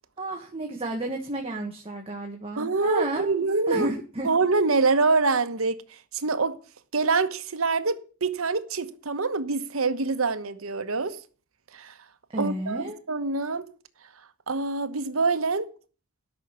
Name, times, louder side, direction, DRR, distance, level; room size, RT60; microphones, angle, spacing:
voice 1, 0.2-3.3 3.7-4.3 12.3-13.0, right 1 dB, 25° right, 1.6 m, -31 dB
voice 2, 2.6-3.9 4.2-5.7 6.1-6.5 6.9-11.2 11.7-11.9 12.4-13.7 14.5-15.7, right 3 dB, 85° right, 1.1 m, -25 dB
12.5 x 6.2 x 8.2 m
head